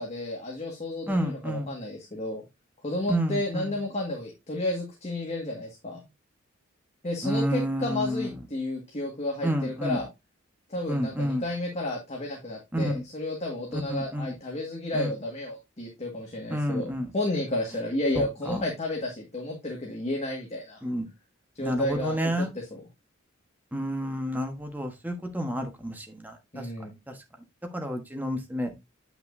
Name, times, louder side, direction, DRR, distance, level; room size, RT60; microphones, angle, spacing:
voice 1, 0.0-2.4 2.8-6.0 7.0-10.1 10.7-20.8 21.5-22.8 26.5-26.9, left 1 dB, 35° left, -1 dB, 1.8 m, -32 dB
voice 2, 1.1-1.7 3.1-3.7 7.2-8.4 9.4-10.0 10.9-11.4 12.7-13.0 13.7-14.3 14.9-15.1 16.5-17.1 18.1-18.6 20.8-21.1 21.6-22.5 23.7-26.7 27.1-27.2 27.7-28.8, equal, 10° right, 4 dB, 1.2 m, -30 dB
8.7 x 5.9 x 2.6 m, 0.22 s
head